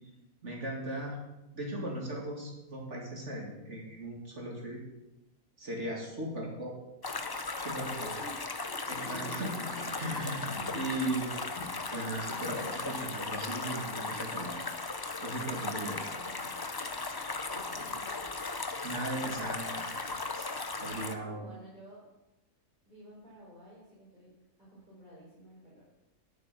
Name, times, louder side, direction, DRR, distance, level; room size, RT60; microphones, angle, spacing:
voice 1, 0.4-1.2 1.5-4.8 5.6-6.7 7.6-8.1 8.9-9.6 10.0-10.4 10.7-11.4 11.9-14.6 15.2-16.0 18.8-20.5 20.8-21.4, right 1 dB, 55° right, -2 dB, 2.7 m, -37 dB
sound 1, 7.0-21.1, left 3 dB, 35° left, 0.3 m, -37 dB
voice 2, 7.8-8.4 8.7-8.9 15.7-16.6 17.5-18.2 21.1-22.0 22.8-24.3 24.6-25.8, right 1 dB, 30° right, -9 dB, 4.6 m, -52 dB
Thunder, 8.9-14.1, left 2 dB, 55° left, 2.2 m, -48 dB
12.5 x 7.0 x 5.6 m, 0.96 s
omnidirectional pair, 1.5 m